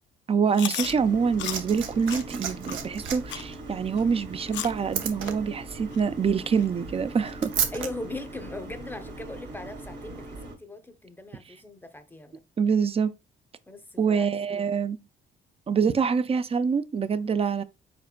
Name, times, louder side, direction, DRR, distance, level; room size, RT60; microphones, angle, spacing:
voice 1, 0.3-7.5 12.6-13.1 14.0-15.0 15.7-17.6, right 6 dB, 30° right, 0.4 m, -25 dB
Chewing mastication, 0.5-0.9 1.4-1.6 2.1-2.2 2.7-2.8 3.3-3.5 4.0-4.1 4.5-4.8 5.2-5.3 5.9-6.0 6.6-6.7 7.3-7.4, left 11 dB, 65° left, 0.4 m, -34 dB
sound 1, 0.8-10.5, right 2 dB, 60° right, 1.7 m, -41 dB
Liquid, 1.0-7.9 9.0-9.1, right 8 dB, 85° right, 0.8 m, -35 dB
voice 2, 7.7-12.4 13.6-14.7, left 2 dB, 10° left, 0.7 m, -40 dB
5.0 x 4.2 x 2.2 m
cardioid pair, 90°, 20 cm